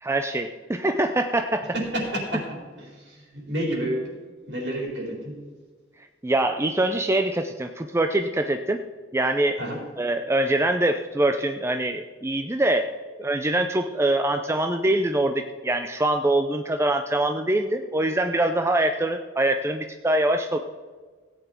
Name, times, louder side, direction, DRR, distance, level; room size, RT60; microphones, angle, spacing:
voice 1, 0.0-1.7 6.2-8.8 9.1-9.6 10.0-12.9 13.2-20.6, right 1 dB, 15° right, 6 dB, 0.4 m, -24 dB
voice 2, 1.9-2.4 3.5-4.1 4.5-5.3 9.6-9.8, equal, 65° right, -2 dB, 4.1 m, -28 dB
17.0 x 9.0 x 4.4 m, 1.5 s
head